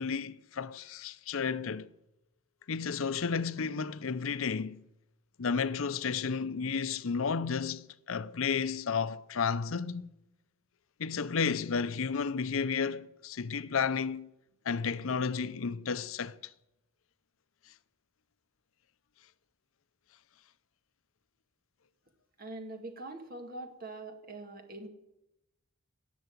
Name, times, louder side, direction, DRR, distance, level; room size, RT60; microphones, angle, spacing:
voice 1, 0.0-1.9 2.7-4.8 5.4-10.1 11.0-14.3 14.7-16.3, left 5 dB, 70° left, 0.6 m, -32 dB
voice 2, 22.4-24.9, right 2 dB, 40° right, 2.0 m, -43 dB
17.5 x 6.9 x 9.2 m
head